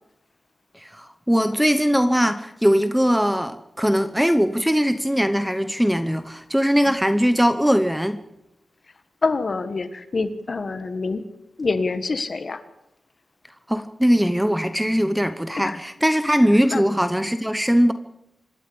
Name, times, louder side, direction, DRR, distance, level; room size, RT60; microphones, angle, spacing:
voice 1, 0.7-8.2 13.7-17.9, equal, 5° right, 11 dB, 0.8 m, -20 dB
voice 2, 9.2-11.2 11.6-12.6 15.6-15.8 16.4-16.8, left 3 dB, 45° left, 11 dB, 1.5 m, -26 dB
25.5 x 12.5 x 8.7 m, 0.86 s
wide cardioid pair, 140°, 0 cm